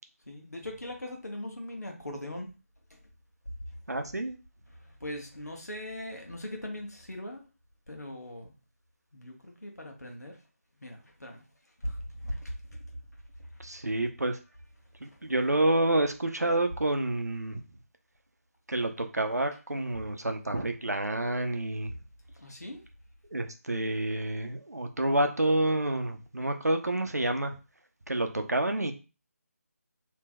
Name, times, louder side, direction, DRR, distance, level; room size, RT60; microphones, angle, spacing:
voice 1, 0.3-2.5 2.9-3.0 4.7-7.4 7.9-8.5 9.1-10.4 10.8-11.4 11.8-12.8 13.4-13.5 15.0-15.2 22.3-22.8, left 1 dB, 80° left, 2 dB, 1.0 m, -40 dB
voice 2, 3.9-4.3 13.6-14.4 15.0-17.6 18.7-21.9 23.3-27.6 28.1-28.9, right 1 dB, 80° right, 6 dB, 0.6 m, -28 dB
3.3 x 2.8 x 2.3 m, 0.31 s
figure-of-eight pair, 155°, 9 cm